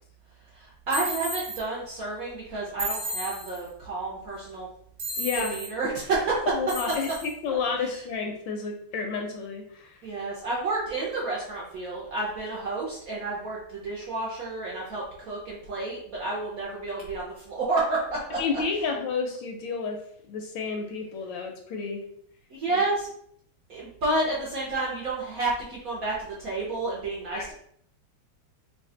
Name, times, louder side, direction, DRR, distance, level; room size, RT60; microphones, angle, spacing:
voice 1, 0.5-4.7 5.4-6.4 7.8-7.9 10.0-18.4 22.5-23.1 23.7-27.5, right 2 dB, 65° right, -4 dB, 0.9 m, -30 dB
sound 1, 0.9-1.6 2.8-3.7 5.0-5.7 6.7-7.3, right 1 dB, 40° right, 1.3 m, -33 dB
voice 2, 5.2-5.6 6.5-10.0 18.4-22.0 22.7-22.8 27.3-27.5, left 5 dB, 75° left, 3 dB, 1.1 m, -31 dB
3.3 x 2.3 x 3.7 m, 0.67 s
omnidirectional pair, 2.3 m